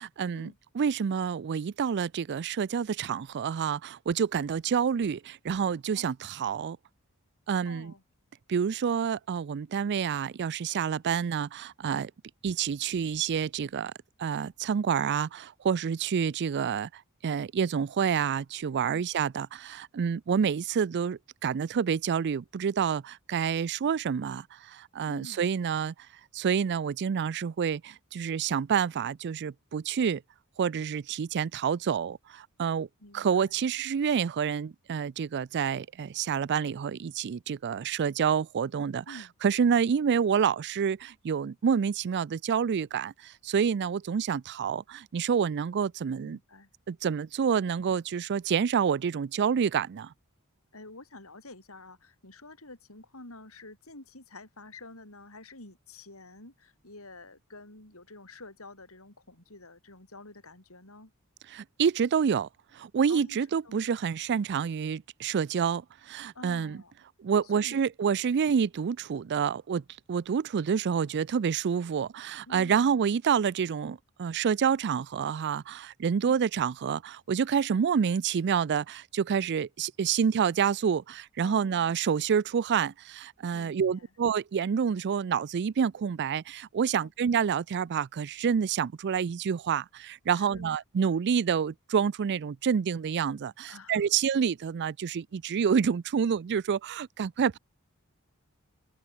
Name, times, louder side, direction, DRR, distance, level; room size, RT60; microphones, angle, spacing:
voice 1, 0.0-6.8 7.5-7.9 8.5-12.1 12.4-13.9 14.2-25.9 26.3-30.2 30.6-32.9 33.1-46.4 46.9-50.1 61.5-62.5 62.7-66.8 67.2-69.8 70.1-97.6, right 7 dB, 50° right, 0.4 m, -28 dB
voice 2, 7.7-8.0 25.0-25.5 33.0-33.6 39.1-39.3 46.2-46.7 50.7-61.1 63.1-63.4 63.6-63.9 66.3-66.9 67.4-67.8 72.5-73.1 76.2-76.4 81.4-82.0 83.5-84.1 87.0-87.1 90.3-90.7 93.7-94.0, left 2 dB, 75° left, 7.0 m, -49 dB
open air
head